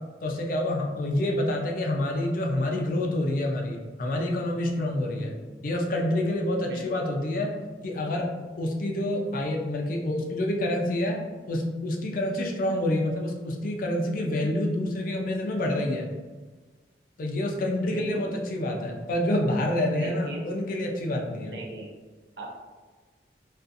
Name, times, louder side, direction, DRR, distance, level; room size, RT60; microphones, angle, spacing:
voice 1, 0.2-5.4 5.6-7.5 7.8-8.3 8.6-11.2 11.5-16.1 17.2-21.6, left 1 dB, 50° left, 0 dB, 0.4 m, -27 dB
voice 2, 6.7-7.0 17.9-18.3 19.9-20.4 21.5-21.9 22.4-22.5, right 2 dB, 65° right, -2 dB, 0.6 m, -39 dB
2.5 x 2.4 x 2.5 m, 1.3 s
head